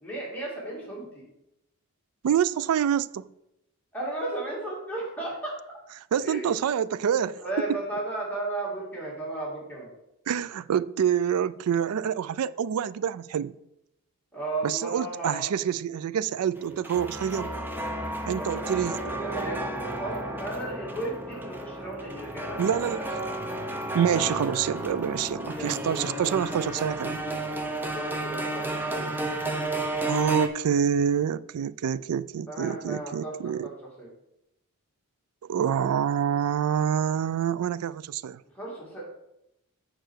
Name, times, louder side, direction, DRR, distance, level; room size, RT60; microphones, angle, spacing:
voice 1, 0.0-1.3 3.9-5.5 6.1-6.5 7.4-9.9 14.3-15.5 18.4-18.6 18.9-22.9 25.3-26.1 27.9-29.7 32.5-34.1 38.5-39.0, right 2 dB, 5° left, 2.4 m, -35 dB
voice 2, 2.2-3.3 6.1-7.4 10.3-13.6 14.6-17.5 18.3-19.0 22.6-23.3 23.9-27.2 30.1-33.7 35.5-38.4, right 8 dB, 75° right, 0.3 m, -27 dB
sound 1, 16.6-30.5, right 1 dB, 10° right, 0.7 m, -32 dB
6.7 x 4.6 x 6.3 m
head